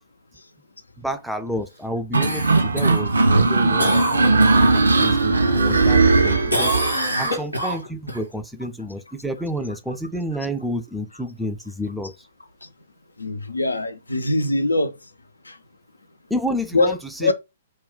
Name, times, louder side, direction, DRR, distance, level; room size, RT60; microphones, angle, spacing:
voice 1, 1.0-4.5 4.8-6.8 7.2-12.1 16.3-17.3, equal, ahead, 0.3 m, -30 dB
sound 1, 2.1-6.9, right 3 dB, 75° right, 0.4 m, -18 dB
Cough, 2.2-5.2 5.6-6.2 6.5-8.2 12.6-12.7, right 1 dB, 90° right, 1.0 m, -26 dB
voice 2, 13.2-14.9 15.5-15.6 16.7-16.9 17.2-17.3, left 2 dB, 80° left, 0.4 m, -22 dB
2.3 x 2.2 x 3.6 m
figure-of-eight pair, 115°, 0 cm